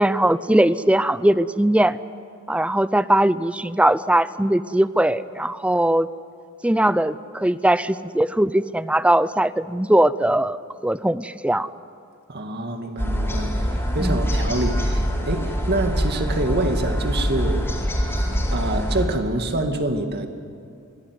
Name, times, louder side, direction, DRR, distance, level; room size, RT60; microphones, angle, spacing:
voice 1, 0.0-2.0 2.5-6.1 6.6-10.6 10.8-11.7 14.0-14.2, right 1 dB, 5° right, 15 dB, 0.5 m, -20 dB
voice 2, 12.3-17.6 18.5-20.3, right 2 dB, 50° right, 5 dB, 2.2 m, -26 dB
sound 1, 13.0-19.1, equal, 10° left, 4.5 m, -24 dB
25.0 x 18.5 x 9.5 m, 2.4 s
head